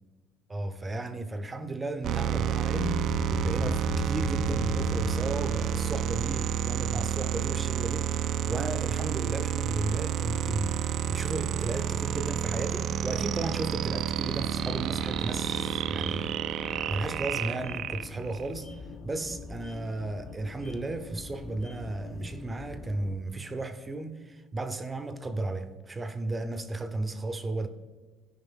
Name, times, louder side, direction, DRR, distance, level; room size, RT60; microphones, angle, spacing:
voice 1, 0.5-16.4 16.7-27.7, right 2 dB, 20° right, 0.6 m, -35 dB
sound 1, 2.0-18.5, right 9 dB, 55° right, 0.4 m, -30 dB
sound 2, 2.7-7.0, left 6 dB, 70° left, 0.7 m, -36 dB
sound 3, 14.1-23.2, left 3 dB, 30° left, 1.2 m, -44 dB
13.5 x 5.1 x 3.6 m
cardioid pair, 110°, 0 cm